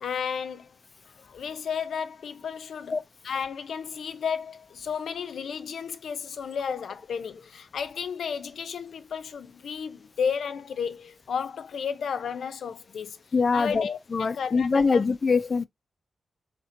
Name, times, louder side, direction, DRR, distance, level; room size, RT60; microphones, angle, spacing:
voice 1, 0.0-0.7 1.2-3.0 3.2-13.2 13.5-15.0, left 6 dB, 85° left, 0.6 m, -33 dB
voice 2, 13.3-13.8 14.1-15.7, left 4 dB, 35° left, 0.4 m, -23 dB
4.3 x 3.3 x 2.6 m
wide cardioid pair, 145°, 0 cm